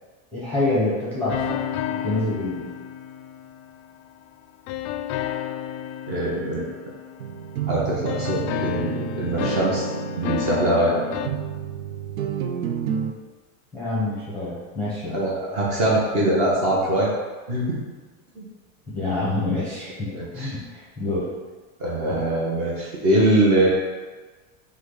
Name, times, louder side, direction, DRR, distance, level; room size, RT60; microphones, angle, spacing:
voice 1, 0.3-1.6 1.9-2.7 13.7-15.2 18.9-21.3 22.1-22.2, left 2 dB, 5° left, -8 dB, 0.8 m, -27 dB
sound 1, 1.3-4.0 4.7-7.7 8.1-11.3, left 10 dB, 85° left, 0.5 m, -31 dB
voice 2, 6.1-6.7 7.7-9.9 10.1-11.0 15.1-17.1 17.5-17.8 18.4-18.5 20.1-20.5 21.8-23.7, right 1 dB, 30° right, -5 dB, 1.0 m, -22 dB
sound 2, 7.2-13.1, right 9 dB, 85° right, 0.6 m, -30 dB
5.8 x 2.3 x 3.9 m, 1.3 s
supercardioid pair, 175°, 41 cm